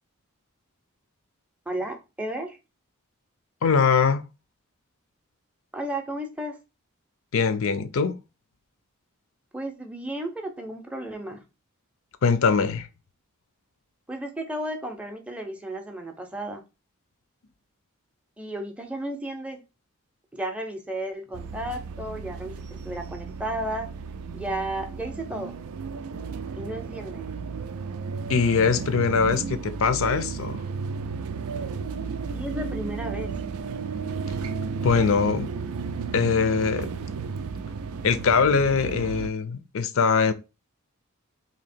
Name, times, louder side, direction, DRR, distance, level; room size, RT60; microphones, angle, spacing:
voice 1, 1.7-2.6 5.7-6.6 9.5-11.4 14.1-16.6 18.4-19.6 20.3-22.5 22.8-23.9 24.3-25.6 26.6-27.3 32.3-33.3, right 1 dB, 5° right, 0.5 m, -33 dB
voice 2, 3.6-4.2 7.3-8.2 12.2-12.9 28.3-30.6 34.8-35.5 36.1-36.9 38.0-40.3, left 5 dB, 65° left, 0.5 m, -22 dB
sound 1, 21.3-39.3, right 5 dB, 80° right, 0.4 m, -33 dB
2.8 x 2.7 x 4.2 m
head